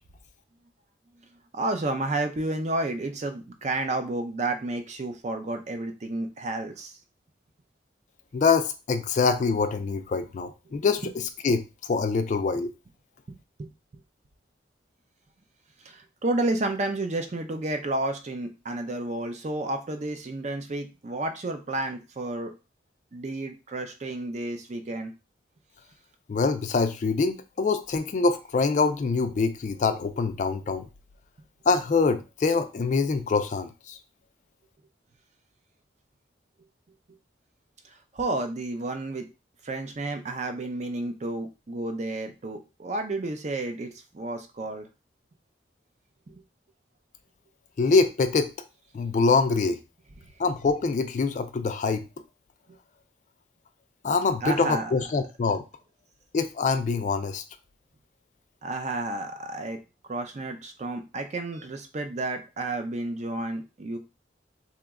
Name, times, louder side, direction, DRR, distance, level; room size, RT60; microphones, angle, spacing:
voice 1, 1.5-6.9 13.3-13.7 15.9-22.5 23.1-25.1 38.1-39.2 39.6-44.9 46.3-46.4 54.4-54.9 58.6-59.8 60.1-64.0, right 2 dB, 40° right, 6 dB, 0.4 m, -31 dB
voice 2, 8.3-12.7 26.3-30.9 31.7-34.0 47.8-48.5 48.9-49.8 50.4-52.1 54.0-55.6 56.3-57.4, left 4 dB, 40° left, 9 dB, 0.3 m, -24 dB
2.9 x 2.1 x 3.5 m, 0.28 s
head